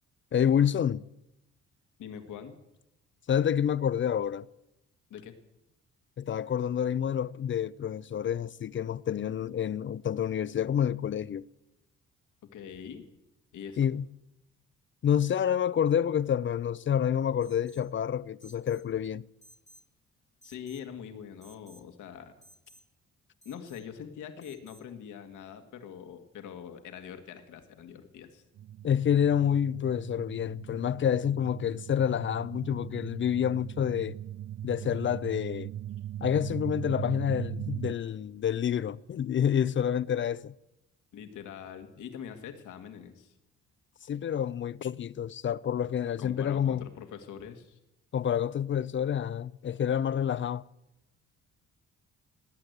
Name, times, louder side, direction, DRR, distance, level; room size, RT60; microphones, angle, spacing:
voice 1, 0.3-1.1 3.3-4.5 6.2-11.4 13.8-14.1 15.0-19.3 28.8-34.2 34.6-35.7 36.2-40.5 44.1-46.9 48.1-50.6, left 9 dB, 40° left, 0.5 m, -28 dB
voice 2, 2.0-2.6 5.1-5.3 12.5-13.1 13.5-13.8 20.4-22.3 23.5-28.4 41.1-43.3 46.2-47.8, left 8 dB, 80° left, 1.9 m, -43 dB
Alarm, 17.4-17.9 18.4-18.9 19.4-19.9 20.4-20.9 21.4-21.9 22.4-22.9 23.4-23.9 24.4-24.9, right 1 dB, 25° left, 1.3 m, -58 dB
sound 1, 28.6-37.9, right 12 dB, 45° right, 0.5 m, -40 dB
19.0 x 8.9 x 8.0 m
cardioid pair, 90°, 30 cm